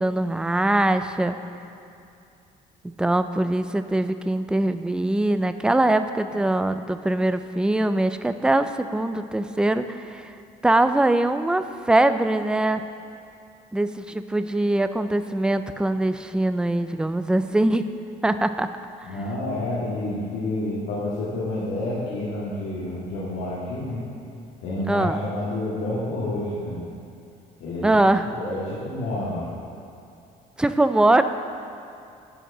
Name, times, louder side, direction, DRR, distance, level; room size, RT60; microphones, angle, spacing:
voice 1, 0.0-1.4 3.0-10.3 10.6-12.8 13.7-17.9 18.2-18.7 24.9-25.2 27.8-28.3 30.6-31.2, right 1 dB, 5° right, 10 dB, 0.4 m, -22 dB
voice 2, 19.0-24.0 24.6-26.8 27.6-27.9 28.3-29.5, left 1 dB, 80° left, -10 dB, 2.2 m, -29 dB
11.0 x 5.0 x 6.7 m, 2.6 s
cardioid pair, 110°, 17 cm